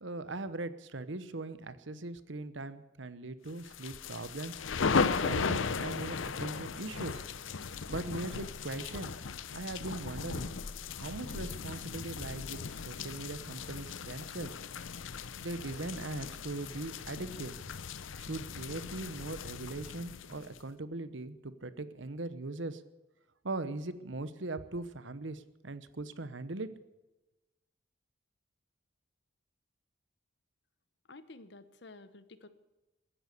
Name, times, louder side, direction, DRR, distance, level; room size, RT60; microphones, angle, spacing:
voice 1, 0.0-4.5 5.0-7.2 7.9-9.2 9.5-10.5 10.9-14.5 15.4-17.6 18.2-22.8 23.4-26.7, right 2 dB, 70° right, 13 dB, 1.0 m, -40 dB
sound 1, 3.6-20.6, left 5 dB, 85° left, 0.7 m, -37 dB
voice 2, 31.1-32.5, left 2 dB, 60° left, 13 dB, 1.1 m, -51 dB
16.0 x 10.5 x 8.3 m, 1.0 s
head